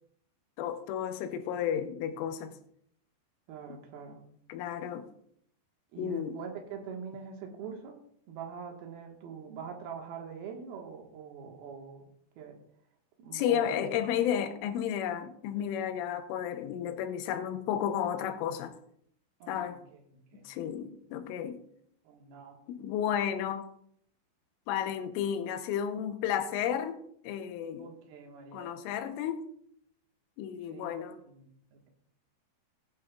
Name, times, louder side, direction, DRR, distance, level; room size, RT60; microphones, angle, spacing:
voice 1, 0.6-2.6 4.5-5.1 6.0-6.4 13.3-18.7 19.5-19.8 20.5-21.6 22.7-23.7 24.7-27.9 28.5-29.5 30.4-31.2, left 9 dB, 90° left, 3.3 m, -32 dB
voice 2, 3.5-4.2 5.9-8.0 8.3-12.1 12.4-12.6 13.2-14.2 15.5-15.7 19.4-20.0 20.3-20.5 22.0-22.6 27.8-28.7 30.6-31.9, right 6 dB, 65° right, 2.8 m, -44 dB
16.0 x 10.0 x 2.3 m
omnidirectional pair, 5.6 m